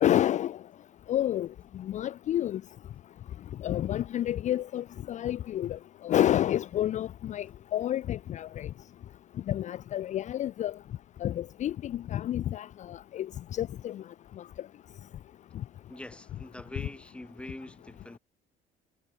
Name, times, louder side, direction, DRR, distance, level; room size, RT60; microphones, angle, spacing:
voice 1, 0.0-0.6 1.1-1.5 1.7-2.6 3.6-7.5 7.7-8.7 9.5-10.7 11.2-14.0, left 12 dB, 45° left, 0.4 m, -29 dB
voice 2, 15.9-18.2, left 1 dB, 5° left, 1.4 m, -44 dB
cardioid pair, 110°, 17 cm